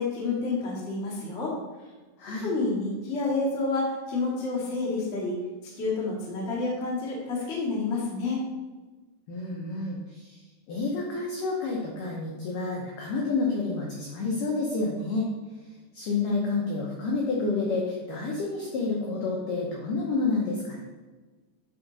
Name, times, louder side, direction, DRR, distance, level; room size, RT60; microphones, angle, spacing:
voice 1, 0.0-1.5 2.2-5.4 5.8-8.4, left 3 dB, 60° left, -6 dB, 0.7 m, -29 dB
voice 2, 2.2-2.5 9.3-10.4 10.7-15.3 15.9-20.8, left 3 dB, 90° left, -2 dB, 1.8 m, -29 dB
9.4 x 4.0 x 4.0 m, 1.3 s
omnidirectional pair, 5.1 m